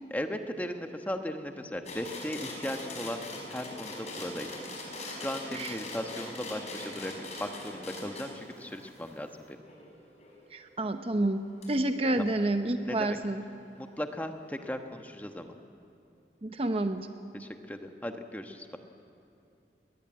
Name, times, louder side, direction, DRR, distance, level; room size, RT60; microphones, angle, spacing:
voice 1, 0.1-3.2 3.5-4.5 5.1-9.6 12.2-12.3 12.8-13.2 13.7-15.5 17.3-18.8, left 1 dB, 10° left, 5 dB, 1.2 m, -37 dB
sound 1, 1.9-10.4 11.6-11.7, left 1 dB, 40° left, 5.6 m, -41 dB
voice 2, 10.5-13.4 16.4-17.1, right 1 dB, 35° right, 8 dB, 0.8 m, -29 dB
22.0 x 20.0 x 8.7 m, 2.7 s
head